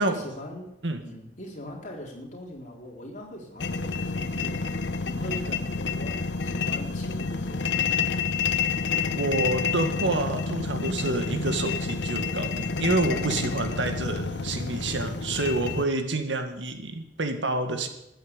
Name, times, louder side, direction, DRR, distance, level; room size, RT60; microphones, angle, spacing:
voice 1, 0.0-0.7 1.0-8.1, equal, 45° left, -1 dB, 4.0 m, -41 dB
sound 1, 3.6-15.8, left 5 dB, 75° left, 0.9 m, -29 dB
voice 2, 9.1-17.9, right 2 dB, 85° right, 7 dB, 1.9 m, -28 dB
13.5 x 9.0 x 8.8 m, 0.86 s
head